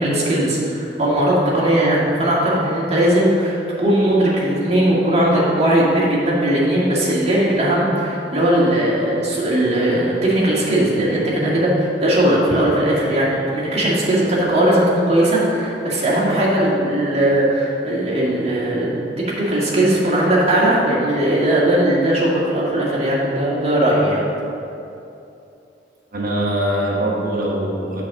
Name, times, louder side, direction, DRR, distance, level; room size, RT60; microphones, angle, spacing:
voice 1, 0.0-24.2, right 1 dB, 35° right, -6 dB, 2.0 m, -18 dB
voice 2, 26.1-28.0, right 1 dB, 50° right, -3 dB, 1.2 m, -22 dB
8.3 x 4.2 x 7.1 m, 2.8 s
head